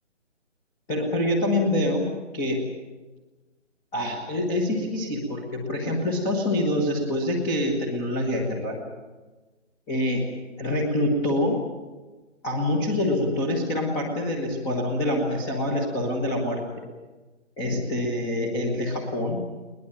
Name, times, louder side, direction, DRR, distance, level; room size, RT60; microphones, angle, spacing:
voice 1, 0.9-2.1 2.3-2.6 3.9-8.8 9.9-10.2 10.6-11.6 12.4-16.6 17.6-19.4, left 1 dB, 5° left, -1 dB, 1.3 m, -25 dB
22.0 x 20.0 x 8.9 m, 1.3 s
figure-of-eight pair, 155°, 37 cm